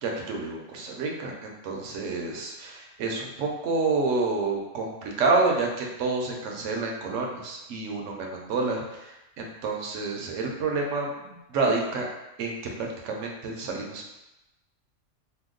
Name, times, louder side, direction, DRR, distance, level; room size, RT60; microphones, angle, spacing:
voice 1, 0.0-12.1 12.4-14.1, right 3 dB, 70° right, 0 dB, 0.9 m, -29 dB
2.8 x 2.1 x 3.7 m, 0.96 s
omnidirectional pair, 1.4 m